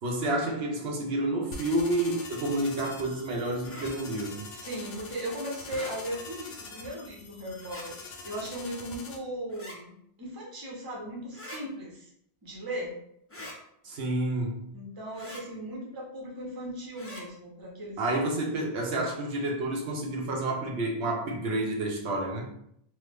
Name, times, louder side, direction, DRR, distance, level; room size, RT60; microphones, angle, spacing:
voice 1, 0.0-4.4 13.8-14.7 18.0-22.5, right 1 dB, 80° right, 0 dB, 1.0 m, -29 dB
sound 1, 1.5-9.2, left 4 dB, 75° left, 0.8 m, -44 dB
sound 2, 3.6-3.9 5.6-5.9 7.6-7.9 9.5-9.8 11.3-11.6 13.3-13.6 15.1-15.4 16.9-17.2, left 1 dB, 20° left, 0.4 m, -43 dB
voice 2, 4.5-12.1 12.4-12.9 14.7-18.0, right 1 dB, 25° right, -2 dB, 0.7 m, -37 dB
3.1 x 2.1 x 3.3 m, 0.72 s
omnidirectional pair, 1.1 m